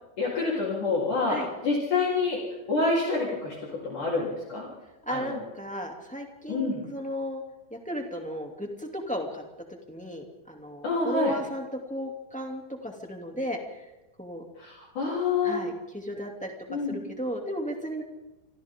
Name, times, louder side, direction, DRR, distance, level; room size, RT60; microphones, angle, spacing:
voice 1, 0.2-1.4 1.6-2.4 2.7-4.7 5.1-5.4 6.5-6.8 10.8-11.3 14.6-15.6 16.7-17.0, left 3 dB, 45° left, -5 dB, 5.1 m, -27 dB
voice 2, 5.0-7.4 7.7-9.4 9.9-13.8 14.2-14.4 15.4-18.0, equal, 5° left, 1 dB, 1.4 m, -35 dB
27.5 x 26.0 x 3.8 m, 1.0 s
omnidirectional pair, 5.3 m